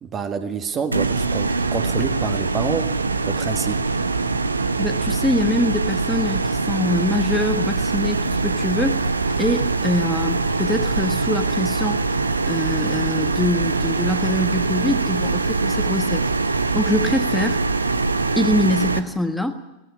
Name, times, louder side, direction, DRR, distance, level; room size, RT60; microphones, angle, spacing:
voice 1, 0.0-2.9 3.2-3.8, right 6 dB, 25° right, 8 dB, 1.5 m, -27 dB
sound 1, 0.9-19.0, right 3 dB, 80° right, 1.0 m, -23 dB
voice 2, 4.8-9.1 9.4-12.1 12.5-16.3 16.7-17.6 18.4-19.5, left 1 dB, 5° left, 7 dB, 1.4 m, -24 dB
17.0 x 16.0 x 9.6 m, 1.0 s
figure-of-eight pair, 90°, 0 cm